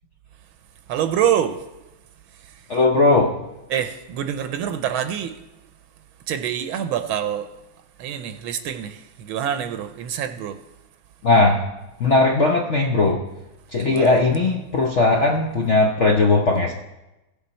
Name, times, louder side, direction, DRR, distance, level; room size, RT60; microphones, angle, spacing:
voice 1, 0.9-1.6 2.3-2.8 3.7-5.4 6.3-7.5 8.0-10.6 13.8-14.2, right 9 dB, 80° right, 1.4 m, -26 dB
voice 2, 2.7-3.4 11.2-11.7 12.0-13.2 13.7-16.7, left 3 dB, 75° left, 0.6 m, -18 dB
15.0 x 6.9 x 4.3 m
omnidirectional pair, 2.3 m